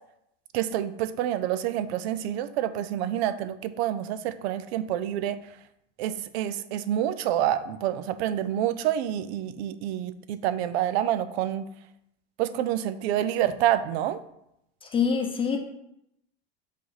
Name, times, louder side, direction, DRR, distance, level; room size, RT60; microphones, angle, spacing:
voice 1, 0.5-5.4 6.0-11.7 12.4-14.2, right 11 dB, 85° right, 13 dB, 0.6 m, -27 dB
voice 2, 14.8-15.6, left 6 dB, 15° left, 2 dB, 0.7 m, -25 dB
5.3 x 3.4 x 5.6 m, 0.80 s
supercardioid pair, 150°, 31 cm